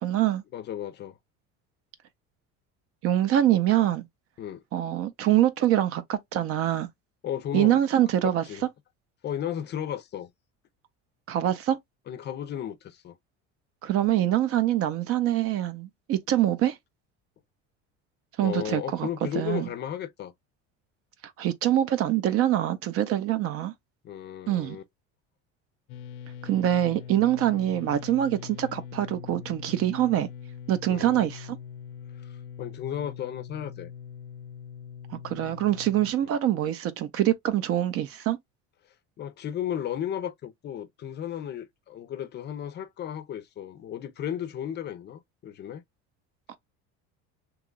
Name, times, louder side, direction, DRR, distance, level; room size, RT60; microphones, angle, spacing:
voice 1, 0.0-0.4 3.0-4.1 4.7-6.9 7.5-8.4 11.3-11.8 13.8-16.8 18.4-19.1 19.4-19.7 21.4-23.7 24.5-24.8 26.4-30.3 30.7-31.6 35.1-38.4 46.5-46.6, right 12 dB, 50° right, 0.6 m, -24 dB
voice 2, 0.5-1.2 4.4-4.6 7.2-7.8 8.2-8.6 9.2-10.3 12.1-13.2 18.4-20.3 24.0-24.8 30.9-31.3 32.2-33.9 36.2-36.3 39.2-45.8, left 10 dB, 35° left, 0.5 m, -34 dB
sound 1, 25.9-36.1, left 8 dB, 85° left, 0.6 m, -42 dB
2.9 x 2.3 x 3.8 m
cardioid pair, 145°, 31 cm